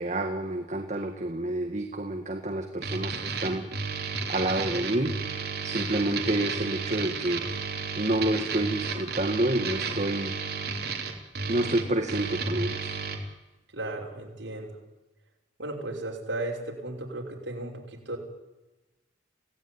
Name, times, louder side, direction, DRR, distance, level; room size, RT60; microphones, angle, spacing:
voice 1, 0.0-3.7 4.3-7.5 8.0-10.4 11.5-12.9, right 1 dB, 40° right, 4 dB, 1.8 m, -29 dB
sound 1, 2.8-13.2, right 4 dB, 55° right, 3.5 m, -32 dB
voice 2, 13.7-14.8 15.6-18.2, right 2 dB, 70° right, 0 dB, 5.7 m, -35 dB
26.5 x 17.5 x 9.9 m, 1.1 s
head